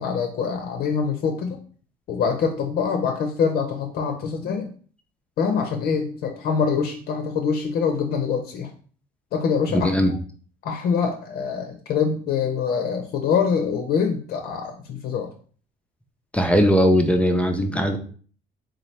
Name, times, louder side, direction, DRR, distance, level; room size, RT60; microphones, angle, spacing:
voice 1, 0.0-1.6 2.1-4.7 5.4-8.7 9.3-9.9 10.6-15.3, left 6 dB, 65° left, 4 dB, 0.6 m, -24 dB
voice 2, 9.7-10.1 16.3-18.0, equal, 5° left, 4 dB, 0.5 m, -19 dB
3.8 x 2.8 x 3.2 m, 0.43 s
cardioid pair, 110°, 17 cm